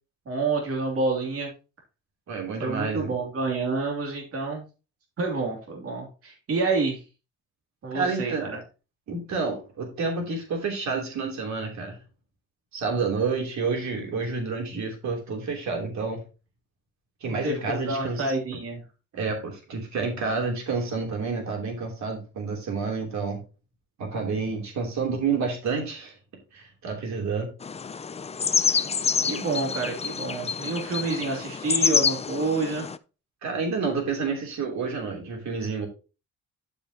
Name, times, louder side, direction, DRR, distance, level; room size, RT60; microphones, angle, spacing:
voice 1, 0.3-1.5 2.6-4.6 5.2-7.0 7.8-8.6 17.3-18.8 28.6-28.8 29.2-32.9, right 3 dB, 50° right, -1 dB, 2.9 m, -28 dB
voice 2, 2.3-3.1 7.9-8.6 9.1-12.0 12.7-16.2 17.2-18.2 19.1-23.4 24.0-26.1 26.5-27.5 33.4-35.9, right 4 dB, 65° right, 1 dB, 3.2 m, -29 dB
sound 1, 27.6-33.0, left 5 dB, 20° left, 0.4 m, -27 dB
11.5 x 5.3 x 2.9 m, 0.32 s
cardioid pair, 90°, 30 cm